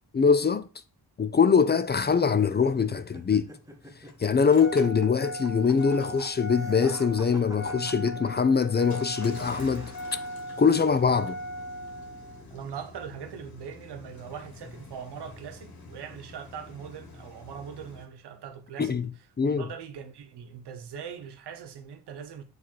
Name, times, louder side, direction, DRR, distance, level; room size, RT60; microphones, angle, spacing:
voice 1, 0.1-0.7 1.2-3.5 4.2-9.9 10.6-11.4 18.8-19.1 19.4-19.7, left 6 dB, 25° left, 0.4 m, -23 dB
sound 1, 1.9-10.4, right 1 dB, 10° right, 1.1 m, -48 dB
Engine starting, 3.0-18.1, equal, 65° left, 1.7 m, -41 dB
voice 2, 12.5-19.0 19.5-22.4, right 7 dB, 90° right, 0.9 m, -41 dB
7.1 x 3.4 x 4.4 m
cardioid pair, 90°, 39 cm